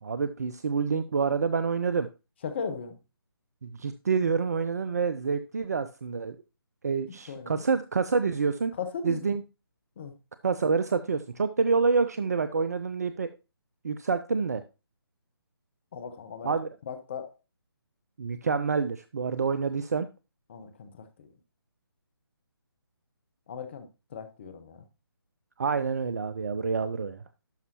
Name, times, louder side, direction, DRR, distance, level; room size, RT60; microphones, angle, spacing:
voice 1, 0.0-2.1 3.6-6.4 6.8-8.7 9.0-9.4 10.4-13.3 13.8-14.6 16.4-16.7 18.2-20.1 25.6-27.2, right 5 dB, 40° right, 0.5 m, -27 dB
voice 2, 2.4-3.0 7.3-7.6 8.8-9.3 10.0-10.1 15.9-16.5 16.9-17.3 20.5-21.3 23.5-23.9 24.1-24.8, left 6 dB, 30° left, 0.8 m, -37 dB
11.5 x 5.4 x 2.8 m
figure-of-eight pair, 145°, 13 cm